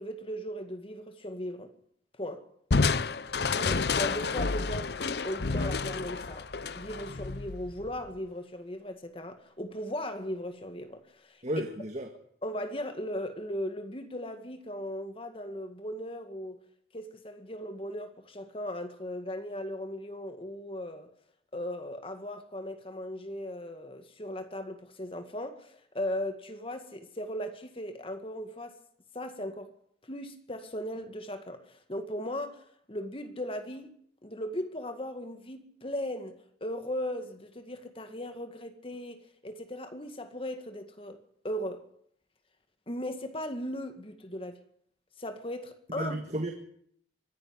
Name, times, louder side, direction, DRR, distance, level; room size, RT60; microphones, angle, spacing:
voice 1, 0.0-1.7 2.2-2.5 3.6-6.5 6.7-11.4 12.4-16.6 16.9-21.1 21.5-28.8 29.1-29.7 30.1-33.9 34.2-41.8 42.9-44.6 45.2-46.2, left 1 dB, 30° left, 2.0 m, -37 dB
Crushing, 2.7-8.1, left 4 dB, 65° left, 0.8 m, -30 dB
voice 2, 11.4-12.1 45.9-46.5, right 1 dB, 40° right, 1.9 m, -33 dB
24.0 x 11.0 x 9.7 m
head